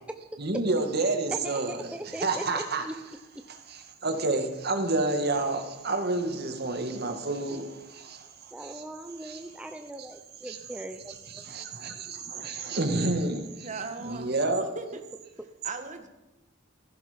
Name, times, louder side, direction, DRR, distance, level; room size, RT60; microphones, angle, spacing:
voice 1, 0.4-1.9 2.2-2.8 3.7-8.8 9.2-9.4 10.4-10.6 11.3-13.7 14.0-14.7, right 2 dB, 55° right, 6 dB, 2.0 m, -29 dB
voice 2, 1.3-3.0 3.3-3.4 8.5-11.4, right 1 dB, 5° right, 6 dB, 0.7 m, -40 dB
voice 3, 13.6-14.4 14.8-15.0 15.6-16.1, right 4 dB, 40° right, 6 dB, 1.7 m, -38 dB
15.5 x 15.5 x 5.2 m, 1.0 s
head